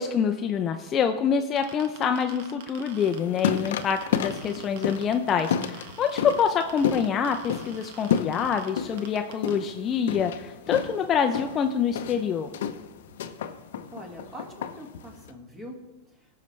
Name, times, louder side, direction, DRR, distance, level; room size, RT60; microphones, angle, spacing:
voice 1, 0.0-12.5, left 7 dB, 25° left, 5 dB, 0.5 m, -26 dB
sound 1, 1.6-9.5, right 7 dB, 65° right, 1.2 m, -45 dB
sound 2, 3.0-15.3, left 8 dB, 75° left, 0.6 m, -32 dB
voice 2, 13.9-15.8 16.1-16.2, equal, 15° right, 1 dB, 1.8 m, -43 dB
16.0 x 5.7 x 3.2 m, 1.1 s
supercardioid pair, 140°, 0 cm